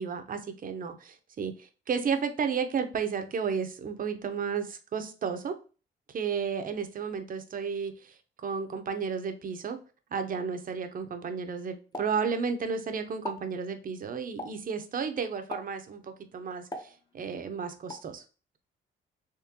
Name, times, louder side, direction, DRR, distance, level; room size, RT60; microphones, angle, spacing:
voice 1, 0.0-5.5 6.1-9.8 10.1-18.2, right 6 dB, 45° right, 0.7 m, -33 dB
Explosion, 11.9-12.8 13.1-13.5 14.4-14.8 15.5-15.9 16.7-17.4 17.9-18.1, left 1 dB, 20° left, 0.7 m, -41 dB
3.7 x 3.1 x 2.8 m
cardioid pair, 90°, 20 cm